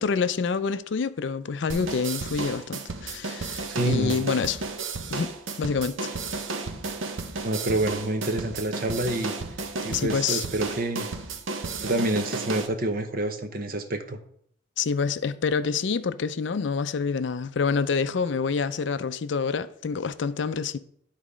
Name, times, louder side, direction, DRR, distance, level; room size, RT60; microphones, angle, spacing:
voice 1, 0.0-4.6 5.1-5.3 5.6-6.1 9.9-10.5 14.8-20.8, left 5 dB, 60° left, 0.4 m, -27 dB
sound 1, 1.7-12.7, right 3 dB, 80° right, 0.8 m, -33 dB
voice 2, 3.7-4.2 7.4-9.3 9.8-11.1 11.8-14.2, right 2 dB, 45° right, 0.8 m, -27 dB
10.5 x 4.1 x 4.9 m
head